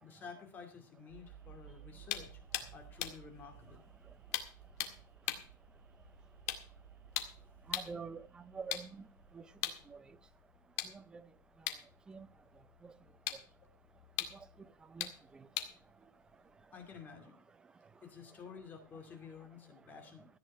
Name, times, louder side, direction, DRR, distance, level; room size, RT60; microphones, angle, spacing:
voice 1, 0.0-2.4 2.7-3.8 16.7-17.4 18.0-20.3, left 6 dB, 15° left, 2.6 m, -51 dB
sound 1, 1.1-10.3, right 9 dB, 65° right, 4.9 m, -58 dB
sound 2, 2.1-8.0 8.6-17.0, left 12 dB, 45° left, 1.9 m, -43 dB
voice 2, 7.7-9.0 9.3-9.4 9.9-10.0 10.9-11.2 12.1-12.3 12.8-12.9 14.9-15.4, right 5 dB, 10° right, 0.5 m, -46 dB
14.5 x 9.4 x 5.5 m
supercardioid pair, 170°, 11 cm